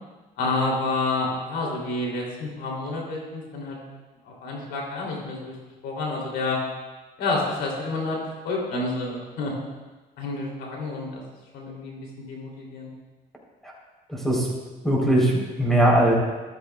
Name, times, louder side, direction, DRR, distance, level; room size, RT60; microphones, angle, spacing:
voice 1, 0.4-3.8 4.2-5.5 5.8-6.6 7.2-9.5 10.2-11.2 11.5-12.0 12.3-12.9, left 2 dB, 80° left, -2 dB, 3.0 m, -29 dB
voice 2, 14.1-14.5 14.8-16.1, right 1 dB, ahead, -3 dB, 3.6 m, -20 dB
13.5 x 13.0 x 2.3 m, 1.3 s
cardioid pair, 110°, 17 cm